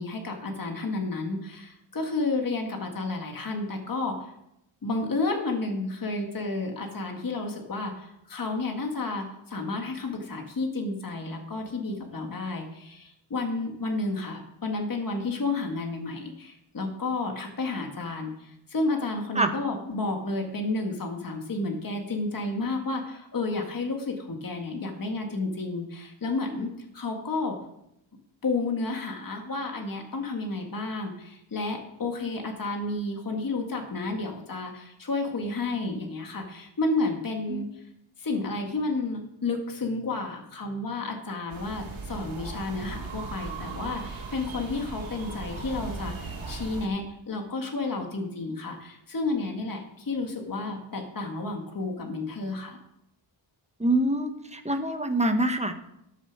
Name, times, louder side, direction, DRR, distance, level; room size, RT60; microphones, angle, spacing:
voice 1, 0.0-4.3 4.8-26.7 26.9-27.6 28.4-37.8 38.2-52.8, left 3 dB, 45° left, 3 dB, 1.8 m, -31 dB
sound 1, 41.5-46.9, right 4 dB, 75° right, 2.6 m, -38 dB
voice 2, 53.8-55.7, right 1 dB, 15° right, 6 dB, 1.1 m, -25 dB
13.5 x 7.2 x 6.0 m, 0.81 s
wide cardioid pair, 135°, 48 cm